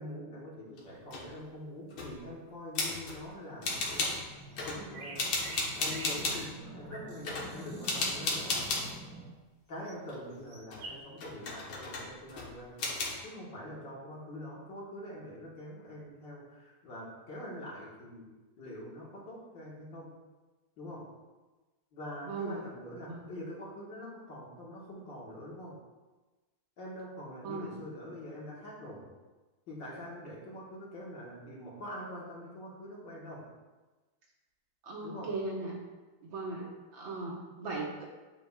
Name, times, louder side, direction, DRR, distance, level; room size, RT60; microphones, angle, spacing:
voice 1, 0.0-4.2 4.6-5.3 5.8-8.6 9.7-12.8 13.2-20.1 20.8-21.1 21.9-25.7 26.8-29.1 29.7-33.5 35.0-35.4, left 1 dB, 60° left, -5 dB, 2.1 m, -44 dB
sound 1, 0.8-1.3 1.9-2.2 2.7-3.2 3.6-4.3 4.6-4.8 5.2-6.5 7.2-7.5 7.8-8.9 10.1-10.8 11.2-12.5 12.8-13.1, left 3 dB, 80° left, 2.1 m, -34 dB
sound 2, 3.6-9.3, right 1 dB, 5° left, 0.8 m, -48 dB
sound 3, 4.4-8.1 9.8-10.0 10.3-11.0, right 3 dB, 90° right, 2.2 m, -47 dB
voice 2, 22.2-22.6 23.0-23.3 27.4-27.7 34.8-35.8 36.2-38.1, right 3 dB, 70° right, -2 dB, 1.9 m, -38 dB
9.8 x 5.3 x 2.3 m, 1.2 s
omnidirectional pair, 2.3 m